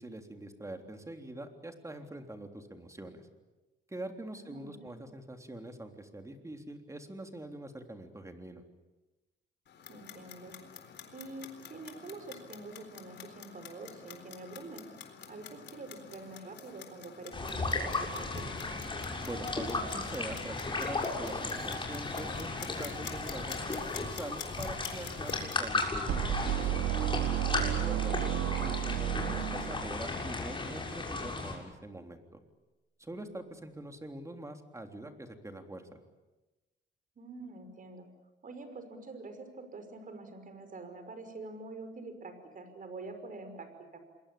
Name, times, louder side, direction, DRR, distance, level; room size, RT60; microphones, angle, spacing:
voice 1, 0.0-3.3 3.9-8.6 19.2-22.5 22.8-26.9 27.6-32.4 33.0-35.9, right 1 dB, 15° right, 5 dB, 3.6 m, -44 dB
voice 2, 4.3-5.0 9.9-10.6 11.1-14.8 15.3-18.6 28.2-28.3 37.2-38.1 38.4-44.0, right 3 dB, 45° right, 8 dB, 5.7 m, -46 dB
Clock, 9.7-25.7, left 7 dB, 60° left, 4.0 m, -48 dB
sound 1, 17.3-31.5, left 3 dB, 25° left, 6.9 m, -35 dB
sound 2, 26.1-30.1, right 12 dB, 90° right, 2.4 m, -32 dB
27.5 x 22.0 x 8.7 m, 1.1 s
cardioid pair, 90°, 20 cm